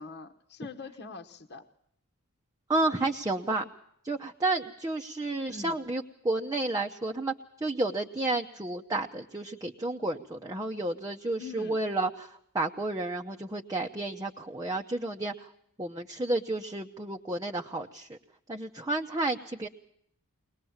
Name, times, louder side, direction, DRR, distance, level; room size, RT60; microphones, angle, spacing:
voice 1, 0.0-1.7 5.5-5.8 11.4-11.8, left 3 dB, 50° left, 4 dB, 1.2 m, -43 dB
voice 2, 2.7-3.6 4.0-7.3 7.6-15.5 15.8-18.2 18.5-19.7, right 2 dB, 15° right, 2 dB, 0.8 m, -31 dB
22.5 x 19.5 x 7.2 m, 0.71 s
head